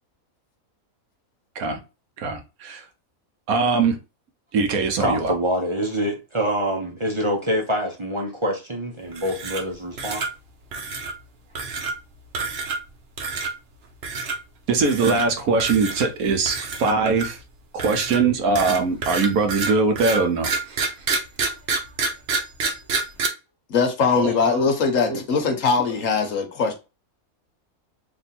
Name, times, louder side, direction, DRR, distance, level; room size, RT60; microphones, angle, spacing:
voice 1, 2.2-2.9 3.5-4.0 4.5-5.3 14.7-17.4 17.7-20.5 24.2-24.6 25.1-25.6, right 4 dB, 85° right, 1.3 m, -22 dB
voice 2, 5.0-10.2, equal, 30° right, 0.6 m, -25 dB
sound 1, 9.1-9.7 10.0-10.3 10.7-11.1 11.6-11.9 12.3-12.9 13.2-13.5 14.0-14.4 14.8-15.3 15.6-16.1 16.5-17.4 17.8-23.3, right 4 dB, 55° right, 0.9 m, -27 dB
voice 3, 23.7-26.7, left 5 dB, 65° left, 1.3 m, -21 dB
3.4 x 2.6 x 4.1 m
omnidirectional pair, 1.5 m